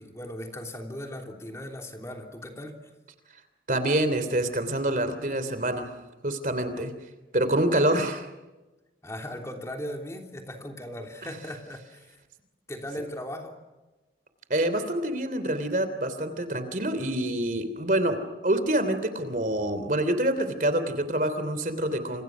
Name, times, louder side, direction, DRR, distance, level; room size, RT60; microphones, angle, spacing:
voice 1, 0.0-2.8 6.8-6.9 9.0-12.1 12.7-13.6, left 1 dB, 15° left, 3 dB, 3.2 m, -38 dB
voice 2, 3.7-5.9 6.2-6.9 7.3-8.3 14.5-18.2 18.4-22.2, right 1 dB, 45° right, 11 dB, 3.1 m, -26 dB
29.5 x 28.0 x 6.2 m, 1.1 s
head